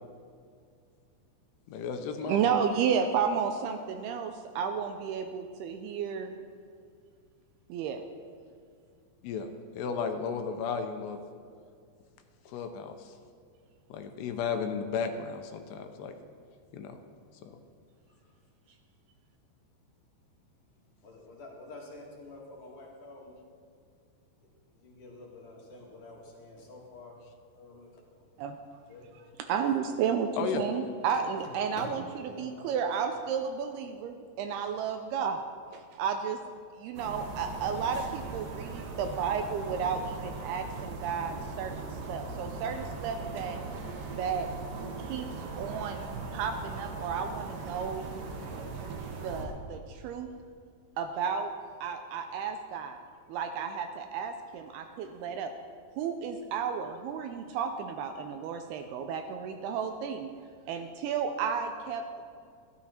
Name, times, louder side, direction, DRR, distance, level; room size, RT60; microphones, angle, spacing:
voice 1, 1.7-2.5 9.2-9.5 9.7-11.2 12.5-13.2 13.9-16.1 16.7-17.0 17.4-17.6 30.4-30.6, left 6 dB, 80° left, 6 dB, 2.8 m, -34 dB
voice 2, 2.2-6.4 7.7-8.0 28.4-28.6 29.1-35.4 35.7-36.4 36.8-43.6 44.1-44.5 45.0-46.1 46.3-48.1 49.2-50.3 51.0-51.5 51.8-53.0 53.3-55.5 55.9-60.3 60.7-62.2, right 7 dB, 80° right, 6 dB, 2.4 m, -32 dB
voice 3, 21.0-23.3 24.8-27.1 27.6-27.9 28.1-28.2 28.9-29.1 31.8-31.9 32.2-32.7 48.5-48.6, left 2 dB, 55° left, -2 dB, 3.0 m, -48 dB
sound 1, 37.0-49.5, right 4 dB, 65° right, 2.6 m, -39 dB
14.0 x 13.0 x 4.3 m, 2.2 s
omnidirectional pair, 4.9 m